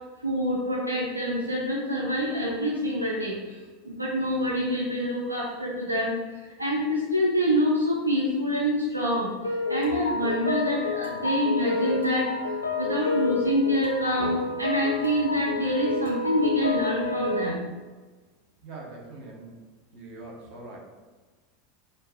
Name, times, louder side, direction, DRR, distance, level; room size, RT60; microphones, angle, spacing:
voice 1, 0.2-3.3 3.9-6.2 6.6-9.3 9.7-12.3 12.7-17.7, equal, 85° right, -3 dB, 0.5 m, -26 dB
sound 1, 9.4-17.5, left 3 dB, 80° left, 0.4 m, -29 dB
voice 2, 18.6-19.6 19.9-20.8, right 2 dB, 45° right, -2 dB, 1.1 m, -42 dB
4.4 x 2.7 x 4.2 m, 1.3 s
figure-of-eight pair, 80°, 0 cm